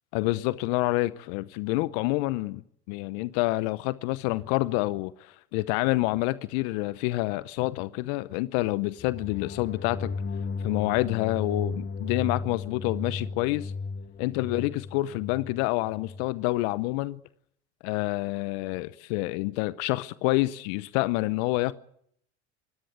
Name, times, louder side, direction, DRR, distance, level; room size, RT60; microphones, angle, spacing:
voice 1, 0.1-2.6 2.9-10.1 10.6-13.7 14.2-17.2 17.8-21.7, left 19 dB, 65° left, 0.9 m, -28 dB
sound 1, 9.0-16.3, left 4 dB, 30° left, 1.6 m, -35 dB
23.5 x 18.0 x 8.1 m
hypercardioid pair, 75°, 34 cm